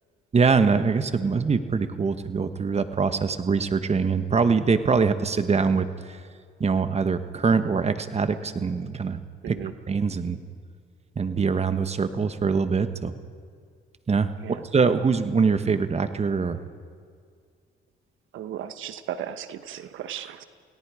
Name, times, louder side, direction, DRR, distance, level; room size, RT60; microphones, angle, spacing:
voice 1, 0.3-5.9 6.6-9.6 9.9-10.4 11.2-13.1 14.1-14.3 14.7-16.6, right 5 dB, 30° right, 10 dB, 1.3 m, -23 dB
voice 2, 9.4-9.7 14.4-14.6 18.3-20.4, right 10 dB, 80° right, 11 dB, 1.2 m, -35 dB
29.5 x 18.0 x 5.0 m, 2.1 s
cardioid pair, 90°, 20 cm